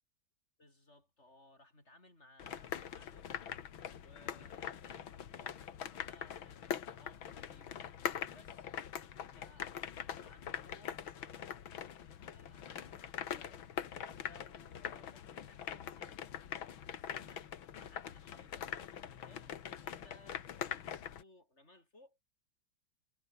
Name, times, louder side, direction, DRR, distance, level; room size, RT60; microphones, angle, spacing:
voice 1, 0.6-3.3 4.0-7.9 8.3-8.7 9.1-11.5 12.2-16.2 16.9-17.5 17.8-22.2, left 1 dB, 30° left, 6.8 m, -63 dB
sound 1, 2.4-21.2, left 9 dB, 80° left, 2.2 m, -43 dB
omnidirectional pair, 2.2 m